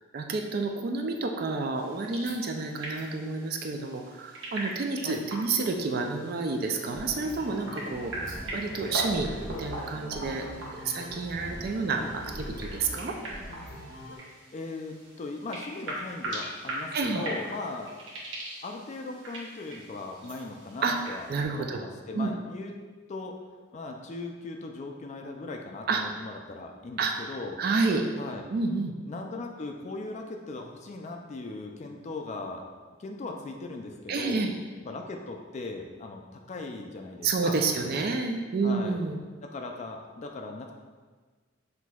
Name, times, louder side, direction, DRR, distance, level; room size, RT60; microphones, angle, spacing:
voice 1, 0.1-9.3 9.6-10.4 10.7-13.2 16.9-17.2 20.8-21.8 22.1-22.3 25.9-26.0 27.0-27.1 27.6-28.0 28.5-28.9 34.1-34.5 37.2-39.2, right 4 dB, 50° right, 3 dB, 0.3 m, -29 dB
sound 1, 1.7-21.4, right 1 dB, 65° right, 1.0 m, -41 dB
sound 2, 6.7-14.2, equal, 75° left, 0.7 m, -42 dB
voice 2, 14.5-17.9 18.6-21.3 21.5-22.7 23.1-23.4 23.7-27.6 28.2-28.5 29.1-32.6 33.0-34.4 34.8-38.0 38.6-39.0 39.4-40.7, left 3 dB, 35° left, 3 dB, 0.3 m, -38 dB
6.0 x 2.6 x 2.3 m, 1.4 s
head